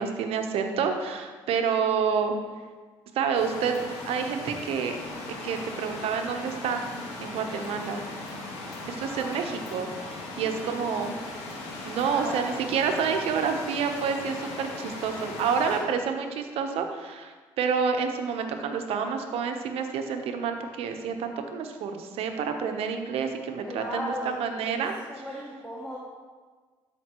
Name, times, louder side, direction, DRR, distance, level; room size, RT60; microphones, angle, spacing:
voice 1, 0.0-2.3 3.1-3.8 4.1-5.0 5.4-6.8 7.2-8.0 8.9-11.1 11.8-24.9, right 6 dB, 70° right, 6 dB, 0.9 m, -28 dB
sound 1, 3.3-15.8, left 2 dB, 75° left, 1.5 m, -38 dB
voice 2, 9.0-9.6 10.3-10.4 12.0-12.5 15.6-16.1 23.7-24.3 24.6-24.8 25.1-26.0, equal, 10° left, -6 dB, 2.0 m, -37 dB
12.5 x 5.2 x 3.0 m, 1.4 s
supercardioid pair, 60°, 10 cm